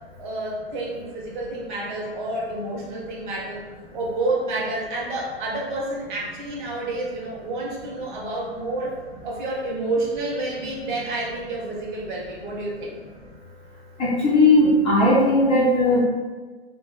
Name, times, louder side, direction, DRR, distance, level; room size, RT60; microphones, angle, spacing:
voice 1, 0.2-3.6 3.9-8.9 9.2-13.0, right 2 dB, 50° right, -3 dB, 0.8 m, -29 dB
voice 2, 14.0-16.0, left 2 dB, 20° left, -7 dB, 0.7 m, -17 dB
2.4 x 2.0 x 3.8 m, 1.3 s
figure-of-eight pair, 110°, 32 cm